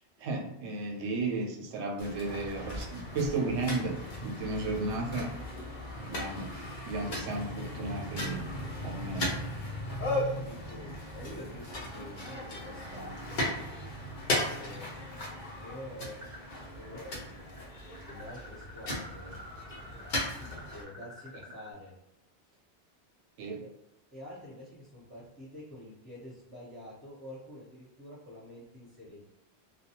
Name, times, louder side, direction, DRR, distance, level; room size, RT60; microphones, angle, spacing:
voice 1, 0.2-5.3 6.0-8.4 8.8-9.4 23.4-23.6, right 2 dB, 80° right, 1 dB, 0.9 m, -34 dB
sound 1, 2.0-20.8, left 1 dB, 50° left, 0.7 m, -37 dB
voice 2, 10.1-13.5 14.5-14.9 15.6-16.2 16.5-17.6 18.0-19.4 20.4-21.9 23.6-23.7 24.1-29.2, left 1 dB, 10° right, -12 dB, 1.0 m, -47 dB
sound 2, 16.2-16.8 17.1-21.7, equal, 35° right, 0.7 m, -48 dB
2.2 x 2.2 x 2.8 m, 0.88 s
omnidirectional pair, 1.1 m